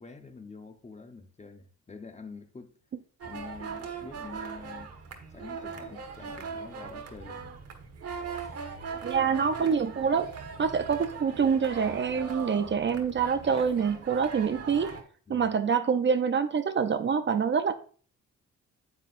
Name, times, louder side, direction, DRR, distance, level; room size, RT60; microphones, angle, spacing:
voice 1, 0.0-2.7 3.2-4.9 5.3-7.4 8.3-8.5 15.3-15.5, left 4 dB, 20° left, 0.9 m, -46 dB
sound 1, 3.2-15.0, right 5 dB, 55° right, 1.5 m, -40 dB
voice 2, 9.0-10.3 10.6-15.0 15.3-17.7, right 6 dB, 40° right, 0.6 m, -26 dB
9.6 x 7.4 x 2.5 m
cardioid pair, 90°, 30 cm